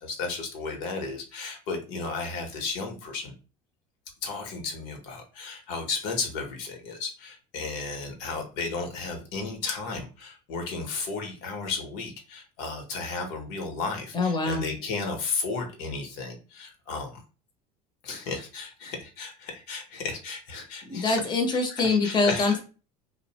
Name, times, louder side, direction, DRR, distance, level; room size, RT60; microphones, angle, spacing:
voice 1, 0.0-3.3 4.2-17.2 18.0-21.2 21.8-22.5, left 4 dB, 70° left, 3 dB, 0.8 m, -34 dB
voice 2, 14.1-14.6 20.9-22.6, left 3 dB, 25° left, 4 dB, 0.7 m, -24 dB
2.5 x 2.0 x 2.8 m, 0.33 s
supercardioid pair, 100°, 19 cm